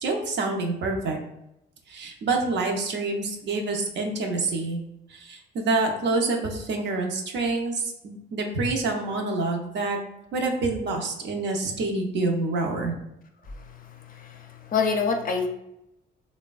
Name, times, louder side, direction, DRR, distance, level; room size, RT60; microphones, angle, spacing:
voice 1, 0.0-1.2 1.9-4.8 5.1-10.0 10.3-13.0, right 3 dB, 65° right, 2 dB, 0.6 m, -27 dB
voice 2, 13.5-15.5, left 5 dB, 45° left, 4 dB, 0.4 m, -28 dB
3.2 x 2.1 x 2.3 m, 0.84 s
cardioid pair, 90°, 20 cm